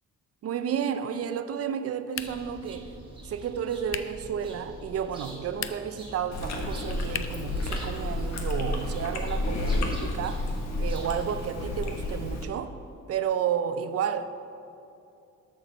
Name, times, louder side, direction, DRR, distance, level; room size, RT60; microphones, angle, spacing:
voice 1, 0.4-2.9 3.2-10.4 10.8-12.7 13.1-14.3, right 8 dB, 50° right, 0.5 m, -31 dB
sound 1, 2.1-2.6 3.9-4.2 5.5-6.0 7.1-7.5, left 9 dB, 45° left, 0.5 m, -36 dB
sound 2, 2.1-11.4, right 1 dB, 15° right, 1.8 m, -45 dB
Chewing mastication, 6.3-12.4, left 2 dB, 60° left, 1.3 m, -31 dB
13.0 x 4.4 x 4.4 m
cardioid pair, 90°, 30 cm